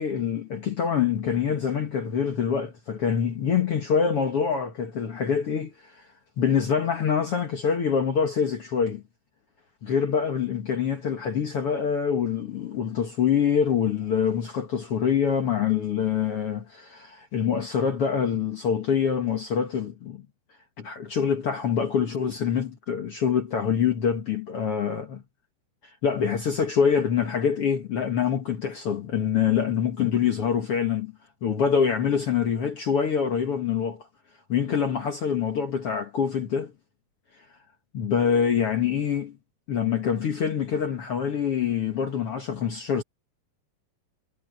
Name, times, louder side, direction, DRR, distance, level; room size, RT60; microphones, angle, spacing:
voice 1, 0.0-6.0 6.4-9.0 9.8-20.2 20.8-25.2 26.0-31.1 31.4-34.1 34.5-36.7 37.9-39.4 39.7-43.0, left 7 dB, 65° left, 1.4 m, -25 dB
omnidirectional pair, 4.8 m